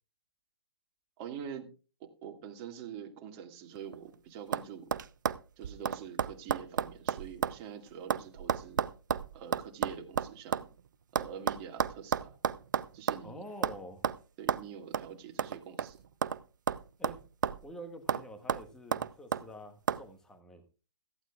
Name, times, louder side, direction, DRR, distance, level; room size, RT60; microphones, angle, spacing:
voice 1, 1.2-1.7 2.0-4.9 5.6-8.8 9.3-10.7 11.1-12.4 12.9-13.4 14.4-16.0, right 8 dB, 25° right, 4 dB, 2.0 m, -45 dB
sound 1, 3.8-4.1 4.5-4.7 4.9-7.6 7.9-10.7 11.2-13.3 13.6-13.8 14.0-14.2 14.5-14.6 14.9-15.1 15.4-16.4 16.7-17.7 18.1-18.2 18.5-19.4 19.9-20.0, right 8 dB, 45° right, 0.6 m, -32 dB
voice 2, 13.2-14.0 17.0-17.2 17.6-20.7, equal, 5° left, 6 dB, 1.4 m, -47 dB
17.5 x 14.5 x 2.4 m, 0.35 s
figure-of-eight pair, 130°, 14 cm